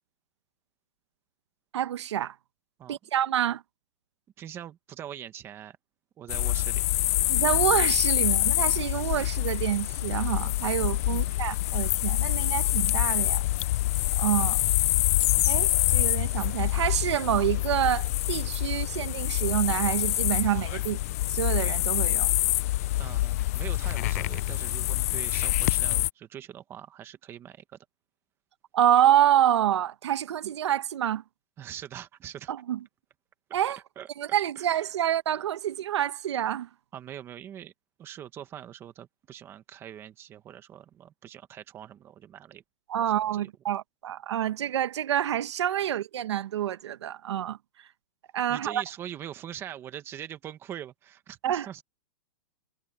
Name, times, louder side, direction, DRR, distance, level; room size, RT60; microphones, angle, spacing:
voice 1, 1.7-2.3 2.9-3.6 7.3-13.4 14.2-14.6 15.5-21.0 21.3-22.3 28.7-31.2 32.5-32.8 33.5-33.8 34.2-36.7 42.9-47.6 48.3-48.8 51.4-51.7, right 11 dB, 75° right, 1.2 m, -27 dB
voice 2, 4.4-5.8 6.2-6.8 11.1-11.3 23.0-27.6 31.6-32.5 34.0-34.9 36.9-37.7 38.0-42.6 43.1-43.5 48.5-51.8, right 10 dB, 15° right, 1.3 m, -43 dB
sound 1, 6.3-26.1, left 17 dB, 35° left, 0.3 m, -26 dB
supercardioid pair, 170°, 15 cm